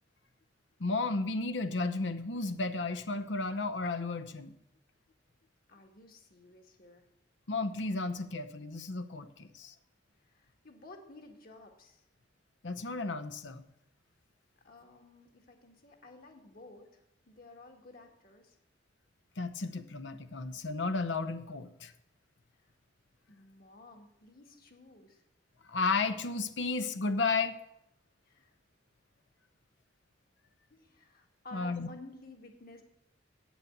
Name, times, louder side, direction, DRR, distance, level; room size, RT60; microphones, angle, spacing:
voice 1, 0.8-4.5 7.5-9.7 12.6-13.6 19.4-21.9 25.7-27.6 31.5-31.9, left 3 dB, 85° left, 11 dB, 0.8 m, -33 dB
voice 2, 5.7-7.1 10.2-12.0 14.6-18.6 22.6-22.7 23.3-25.2 28.3-28.5 30.7-32.8, left 2 dB, 55° left, 3 dB, 1.8 m, -53 dB
8.6 x 7.3 x 8.0 m, 0.81 s
head